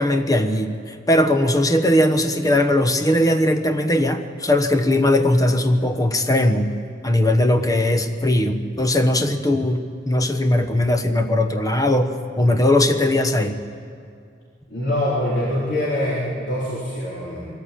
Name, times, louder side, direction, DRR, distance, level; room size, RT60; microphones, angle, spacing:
voice 1, 0.0-6.7 7.0-13.6, left 1 dB, 20° left, 7 dB, 1.1 m, -19 dB
voice 2, 14.7-17.5, left 1 dB, 70° left, -8 dB, 4.3 m, -24 dB
23.0 x 14.0 x 8.7 m, 2.3 s
head